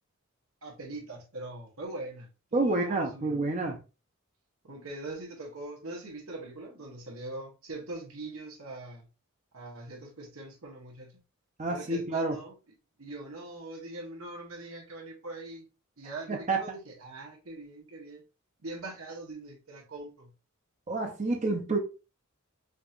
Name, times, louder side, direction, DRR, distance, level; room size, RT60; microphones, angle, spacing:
voice 1, 0.6-3.4 4.6-9.1 9.5-11.2 11.7-12.5 13.0-15.7 16.0-18.2 18.6-20.3, right 2 dB, 90° right, 1.2 m, -42 dB
voice 2, 2.5-3.8 11.6-12.4 16.3-16.6 20.9-21.8, right 2 dB, 35° right, 0.5 m, -28 dB
5.1 x 2.8 x 2.4 m
head